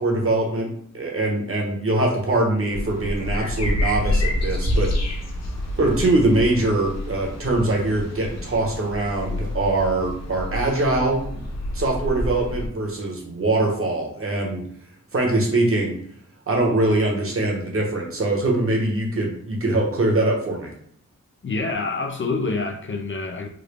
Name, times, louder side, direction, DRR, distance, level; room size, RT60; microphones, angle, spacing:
voice 1, 0.0-4.9 5.8-11.4 11.7-14.7 15.1-16.0 16.5-20.7, right 2 dB, 45° right, -1 dB, 1.2 m, -22 dB
sound 1, 2.7-12.7, left 1 dB, 60° left, 0.9 m, -28 dB
voice 2, 21.4-23.5, left 3 dB, 40° left, 3 dB, 0.5 m, -26 dB
3.7 x 2.2 x 3.3 m, 0.65 s
cardioid pair, 70°, 30 cm